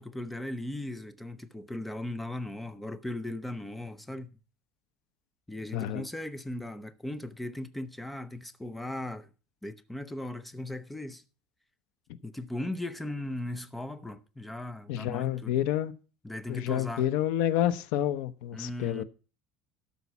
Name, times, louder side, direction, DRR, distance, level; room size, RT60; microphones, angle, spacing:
voice 1, 0.0-4.4 5.5-9.3 9.6-11.2 12.2-15.6 16.2-17.1 18.5-19.0, left 1 dB, 5° left, 0.6 m, -38 dB
voice 2, 5.7-6.1 14.9-15.9 16.5-19.0, left 11 dB, 70° left, 0.8 m, -29 dB
12.5 x 5.3 x 7.0 m
cardioid pair, 170°, 2 cm